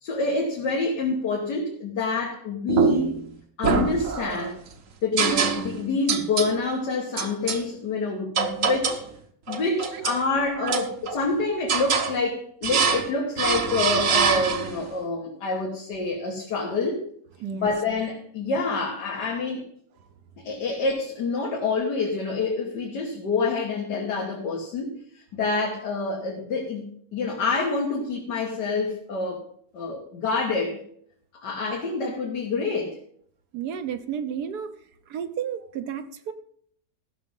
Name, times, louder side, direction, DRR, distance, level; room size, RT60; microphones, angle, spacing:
voice 1, 0.0-3.1 3.6-4.6 5.0-9.0 9.5-17.0 17.5-19.7 20.4-29.4 29.7-30.8 31.4-33.0, left 3 dB, 85° left, -1 dB, 2.1 m, -27 dB
sound 1, 2.7-3.2 3.6-4.5 5.2-5.8 6.1-6.6 7.2-7.6 8.4-9.1 9.5-10.2 10.7-11.3 11.7-12.2 12.6-13.1 13.4-14.8, right 6 dB, 55° right, 1.2 m, -24 dB
voice 2, 33.5-34.7 35.1-36.3, right 8 dB, 70° right, 9 dB, 1.4 m, -32 dB
14.5 x 6.2 x 5.5 m, 0.63 s
omnidirectional pair, 1.8 m